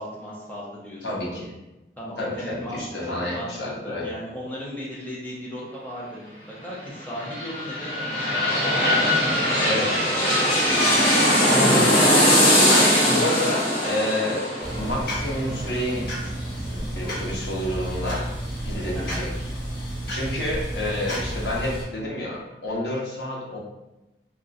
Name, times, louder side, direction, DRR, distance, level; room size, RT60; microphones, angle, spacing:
voice 1, 0.0-1.0 2.0-3.5 3.8-8.9 18.9-19.2, equal, 10° left, -6 dB, 0.6 m, -37 dB
voice 2, 1.0-1.5 2.2-4.1 9.6-10.0 11.5-12.0 12.6-14.4 14.7-16.3 16.7-18.3 18.6-19.3 20.1-23.6, left 1 dB, 85° left, -4 dB, 0.9 m, -29 dB
sound 1, 6.9-16.6 17.0-17.1, equal, 30° left, 0.9 m, -21 dB
sound 2, 14.6-21.8, equal, 60° left, 0.9 m, -31 dB
2.4 x 2.2 x 3.9 m, 0.99 s
head